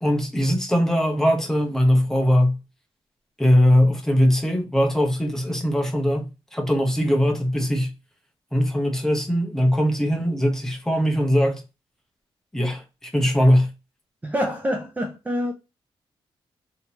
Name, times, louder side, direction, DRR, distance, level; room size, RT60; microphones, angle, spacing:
voice 1, 0.0-2.6 3.4-7.9 8.5-11.6 12.5-13.7, equal, 5° left, 0.9 m, -20 dB
voice 2, 14.2-15.5, equal, 15° right, 0.6 m, -26 dB
3.3 x 2.9 x 2.9 m
cardioid pair, 105°, 10 cm